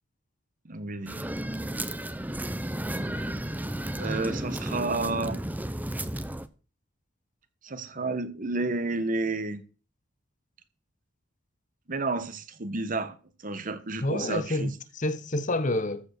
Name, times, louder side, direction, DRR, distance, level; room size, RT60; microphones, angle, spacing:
voice 1, 0.6-1.3 3.9-5.4 7.6-9.6 11.9-13.2 13.4-14.7, right 3 dB, 45° right, 1.1 m, -31 dB
sound 1, 1.1-6.5, right 1 dB, 10° right, 0.7 m, -33 dB
voice 2, 14.0-16.0, left 2 dB, 40° left, 1.0 m, -28 dB
14.0 x 4.9 x 6.6 m
head